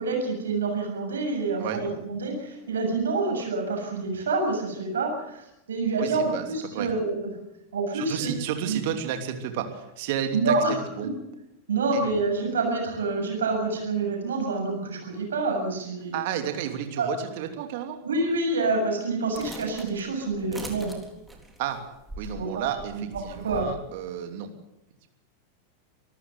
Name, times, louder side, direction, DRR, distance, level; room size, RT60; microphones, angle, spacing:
voice 1, 0.0-7.3 7.7-8.3 8.7-8.8 10.3-11.1 11.7-16.3 17.0-17.1 18.0-20.9 22.4-23.7, right 3 dB, 65° right, 2 dB, 7.1 m, -27 dB
voice 2, 6.0-6.5 6.7-6.9 7.9-11.1 11.9-12.0 16.1-18.0 21.6-21.8 22.2-24.5, right 9 dB, 50° right, 6 dB, 3.0 m, -32 dB
sound 1, 19.3-23.7, right 1 dB, 5° right, 3.8 m, -42 dB
25.5 x 14.0 x 8.2 m, 0.90 s
figure-of-eight pair, 90°, 0 cm